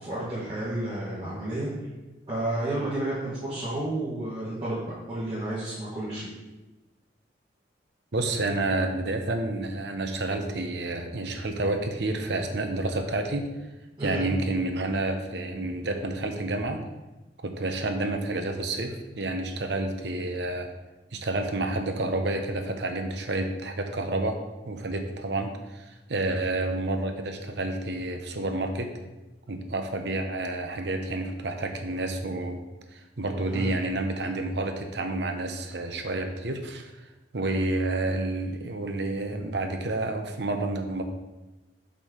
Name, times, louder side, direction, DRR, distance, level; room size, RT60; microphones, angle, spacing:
voice 1, 0.0-1.7 2.3-6.3 14.0-14.2 33.4-33.7, right 1 dB, 25° right, -11 dB, 1.7 m, -31 dB
voice 2, 8.1-13.5 14.0-16.8 17.4-20.7 21.1-24.4 24.7-28.9 29.5-32.6 32.9-37.1 37.3-41.0, right 2 dB, 65° right, 5 dB, 0.8 m, -29 dB
5.3 x 4.5 x 6.2 m, 1.1 s
head